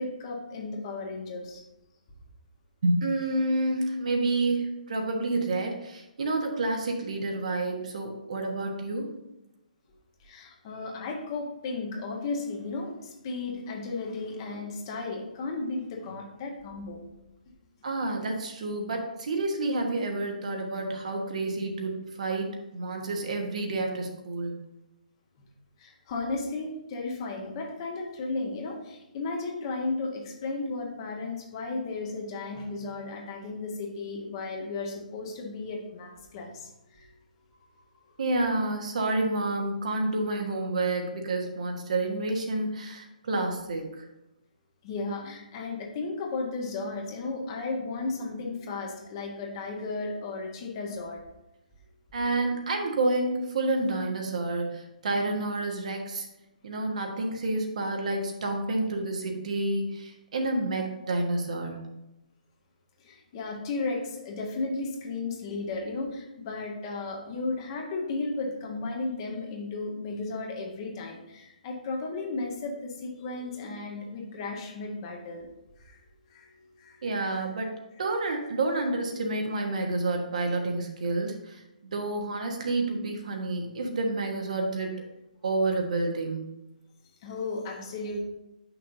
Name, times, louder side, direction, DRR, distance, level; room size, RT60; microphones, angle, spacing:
voice 1, 0.0-1.6 10.2-17.0 25.8-37.1 37.7-37.8 44.8-51.2 63.0-75.5 75.8-76.0 76.3-76.5 76.8-77.0 87.2-88.2, left 3 dB, 35° left, 0 dB, 1.4 m, -34 dB
voice 2, 2.8-9.1 17.8-24.6 38.2-44.1 52.1-56.3 56.6-61.9 77.0-85.0 85.4-86.5, right 2 dB, 55° right, 2 dB, 1.3 m, -29 dB
8.1 x 6.0 x 2.7 m, 0.92 s
figure-of-eight pair, 130°, 5 cm